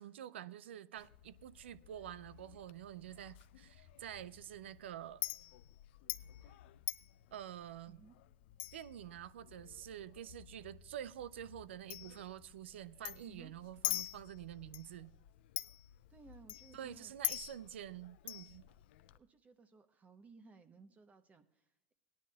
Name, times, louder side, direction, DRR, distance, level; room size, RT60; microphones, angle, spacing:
voice 1, 0.0-5.2 7.3-8.0 8.7-15.1 16.7-18.7, right 11 dB, 90° right, 0.4 m, -48 dB
Chink clink, 1.0-19.2, left 16 dB, 70° left, 0.4 m, -46 dB
voice 2, 16.1-17.2 19.1-21.9, right 4 dB, 25° right, 0.8 m, -59 dB
18.0 x 10.0 x 2.3 m
hypercardioid pair, 105°, 6 cm